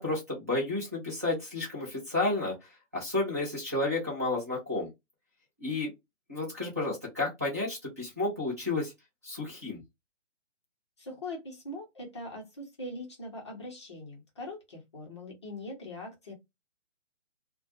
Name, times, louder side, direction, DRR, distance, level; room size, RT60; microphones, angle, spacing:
voice 1, 0.0-2.5 2.9-4.9 5.6-5.9 6.3-8.9 9.2-9.8, left 2 dB, 15° right, 0.5 m, -31 dB
voice 2, 11.0-16.3, left 1 dB, 25° left, 0.6 m, -42 dB
2.4 x 2.1 x 2.7 m
hypercardioid pair, 160°, 38 cm